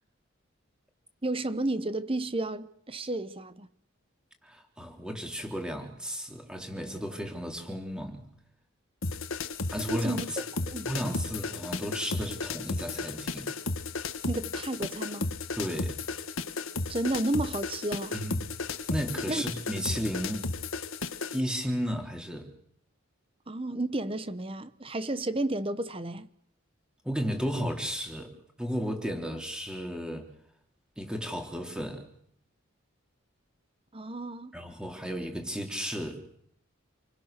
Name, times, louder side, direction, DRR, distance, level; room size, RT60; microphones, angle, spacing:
voice 1, 1.2-3.7 9.9-11.2 14.3-15.3 16.9-18.2 19.3-19.4 23.5-26.3 33.9-34.6, right 2 dB, 25° right, 1.0 m, -32 dB
voice 2, 4.4-8.3 9.7-10.2 10.8-13.5 15.6-16.0 18.1-18.4 18.9-20.5 21.3-22.5 27.0-28.3 28.6-30.3 31.0-32.1 34.5-36.2, equal, 5° right, 3.4 m, -34 dB
sound 1, 9.0-21.4, left 3 dB, 80° left, 1.7 m, -34 dB
28.0 x 23.5 x 6.7 m
head